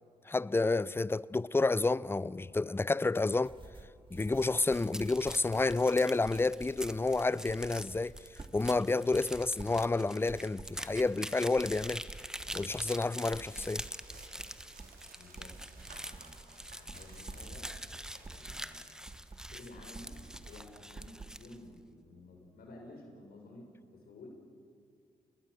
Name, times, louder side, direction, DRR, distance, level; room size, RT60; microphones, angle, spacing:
voice 1, 0.3-3.6 4.1-8.1 8.5-12.0 12.5-13.8, left 3 dB, 15° left, 0.5 m, -30 dB
sound 1, 3.4-21.4, right 3 dB, 30° right, 2.2 m, -50 dB
sound 2, 4.2-21.6, equal, 5° right, 1.3 m, -45 dB
sound 3, 12.3-19.2, right 4 dB, 60° right, 4.5 m, -59 dB
voice 2, 15.2-17.7 18.3-18.8 19.4-24.3, left 2 dB, 65° left, 5.6 m, -53 dB
30.0 x 21.0 x 6.7 m
hypercardioid pair, 45°, 17 cm